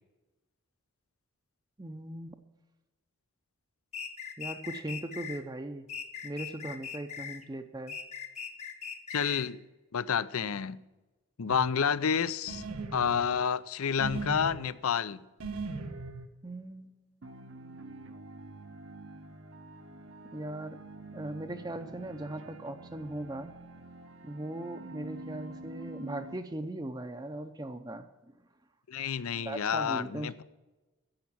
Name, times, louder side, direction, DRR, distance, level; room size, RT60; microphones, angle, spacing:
voice 1, 1.8-2.4 4.4-5.9 6.2-8.0 16.4-17.6 20.3-20.8 21.1-23.5 24.2-28.1 29.4-30.4, right 1 dB, 20° right, 0.6 m, -39 dB
sound 1, 3.9-5.4 5.9-7.4 7.9-9.5, left 7 dB, 30° left, 0.9 m, -40 dB
voice 2, 9.1-9.6 9.9-10.8 11.4-12.6 12.9-15.2 28.9-30.4, left 7 dB, 75° left, 0.5 m, -29 dB
sound 2, 11.5-11.7 12.5-13.4 14.0-14.7 15.4-16.3, right 3 dB, 80° right, 1.4 m, -38 dB
sound 3, 17.2-26.4, right 2 dB, 55° right, 0.8 m, -47 dB
10.5 x 8.1 x 8.6 m
head